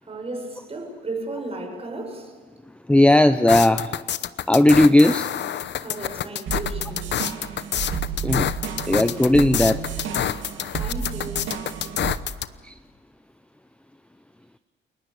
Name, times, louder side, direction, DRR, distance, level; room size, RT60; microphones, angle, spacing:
voice 1, 0.0-2.4 5.7-7.2 10.8-11.5, right 2 dB, 30° right, 6.3 m, -34 dB
voice 2, 2.9-3.9 4.5-5.3 8.2-8.5 8.9-9.8 12.6-12.7, left 1 dB, 5° left, 0.7 m, -16 dB
sound 1, 3.5-12.5, left 10 dB, 60° left, 0.9 m, -27 dB
sound 2, 6.5-12.2, right 7 dB, 75° right, 2.9 m, -31 dB
29.5 x 21.5 x 8.2 m
cardioid pair, 90°, 20 cm